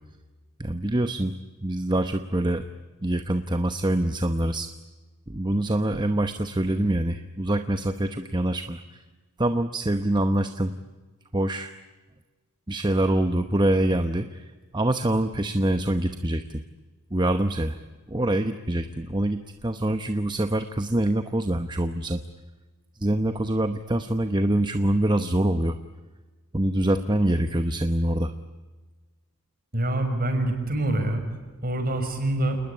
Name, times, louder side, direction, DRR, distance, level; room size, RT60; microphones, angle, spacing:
voice 1, 0.6-1.4 1.6-2.7 3.0-4.7 5.3-9.0 9.4-10.7 11.3-11.7 12.7-14.5 14.7-16.6 17.1-17.8 18.1-22.2 23.0-25.8 26.5-28.3, right 1 dB, 20° right, 8 dB, 0.9 m, -25 dB
voice 2, 29.7-31.2 31.6-32.6, right 1 dB, 40° right, 5 dB, 6.1 m, -25 dB
29.0 x 20.0 x 9.9 m, 1.3 s
head